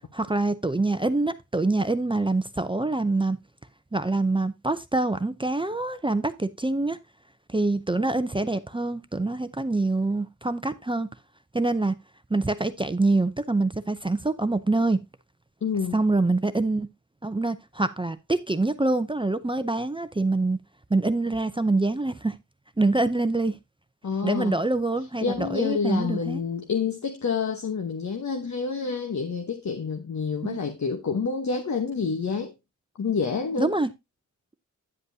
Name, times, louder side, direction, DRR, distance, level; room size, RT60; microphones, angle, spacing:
voice 1, 0.1-3.4 3.9-7.0 7.5-11.1 11.5-11.9 12.3-15.0 15.9-16.9 17.2-20.6 20.9-22.4 22.8-23.6 24.2-26.4 30.4-30.6 33.6-33.9, right 2 dB, 15° right, 0.5 m, -25 dB
voice 2, 15.6-16.0 24.0-24.5 25.2-32.5 33.0-33.7, left 5 dB, 60° left, 1.1 m, -28 dB
9.7 x 7.8 x 2.7 m
wide cardioid pair, 115°, 31 cm